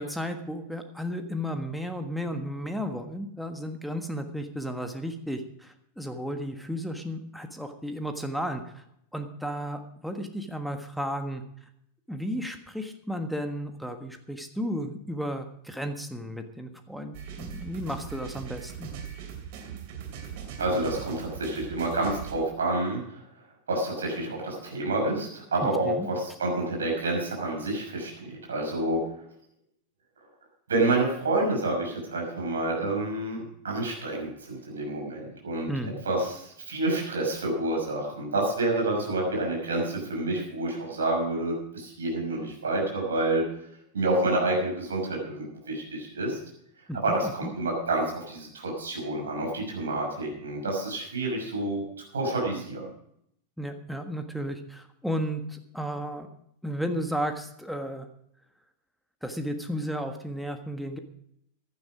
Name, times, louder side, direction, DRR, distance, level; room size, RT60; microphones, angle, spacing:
voice 1, 0.0-8.8 9.1-11.4 12.1-18.9 25.6-26.1 35.7-35.9 46.9-47.0 53.6-56.3 56.6-58.1 59.2-61.0, equal, ahead, 7 dB, 1.4 m, -33 dB
sound 1, 17.1-22.3, right 7 dB, 50° right, 2.9 m, -40 dB
voice 2, 20.6-23.2 23.7-29.0 30.7-35.7 36.0-43.4 43.9-46.4 47.0-51.8 52.1-52.8, right 2 dB, 70° right, 0 dB, 6.1 m, -28 dB
16.0 x 11.0 x 5.0 m, 0.73 s
figure-of-eight pair, 90°, 0 cm